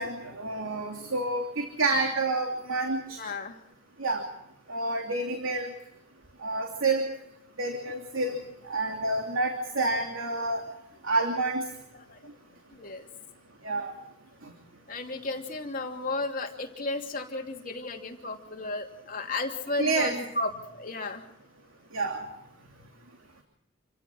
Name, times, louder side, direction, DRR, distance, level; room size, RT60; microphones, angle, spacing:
voice 1, 0.0-3.2 4.0-4.2 4.7-5.7 6.4-7.1 7.6-8.4 8.7-10.6 11.0-11.7 13.6-13.9 19.8-20.2 21.9-22.3, right 2 dB, 85° right, 3 dB, 2.9 m, -28 dB
voice 2, 3.1-3.6 11.9-12.2 12.7-13.1 14.9-21.2, left 2 dB, 40° left, 2 dB, 2.9 m, -34 dB
28.0 x 15.5 x 6.2 m, 0.80 s
head